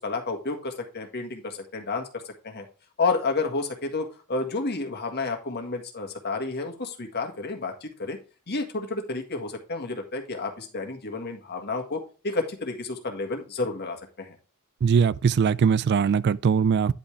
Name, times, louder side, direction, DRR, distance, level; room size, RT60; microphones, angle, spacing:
voice 1, 0.0-2.1 2.4-2.6 3.0-8.2 8.5-14.3, left 3 dB, 50° left, 1.8 m, -30 dB
voice 2, 14.8-16.9, right 6 dB, 50° right, 0.3 m, -21 dB
10.0 x 5.5 x 3.3 m
head